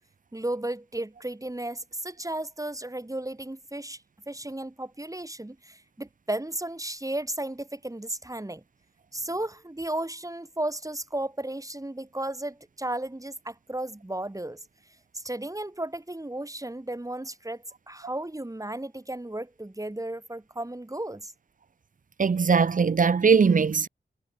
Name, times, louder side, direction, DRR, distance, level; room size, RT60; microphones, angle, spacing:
voice 1, 0.3-4.0 4.3-8.6 9.1-14.6 15.1-21.3, right 1 dB, 15° right, 1.9 m, -34 dB
voice 2, 22.2-23.9, right 5 dB, 45° right, 0.5 m, -20 dB
wide cardioid pair, 80°, 19 cm